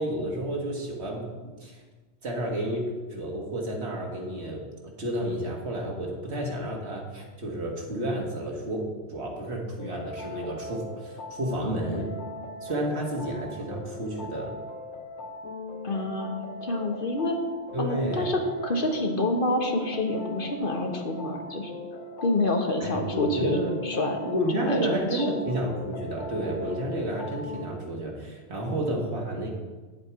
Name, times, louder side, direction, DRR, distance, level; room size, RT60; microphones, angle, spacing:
voice 1, 0.0-1.8 2.2-12.1 12.6-14.5 17.7-18.3 22.8-23.7 24.2-29.5, right 1 dB, 75° right, -1 dB, 2.0 m, -31 dB
sound 1, 9.8-27.7, left 2 dB, 85° left, 1.1 m, -40 dB
voice 2, 15.8-16.3 16.6-17.4 17.8-21.7 22.2-24.2 24.5-25.3, left 2 dB, 55° left, 3 dB, 1.2 m, -27 dB
9.5 x 7.5 x 4.5 m, 1.3 s
omnidirectional pair, 1.1 m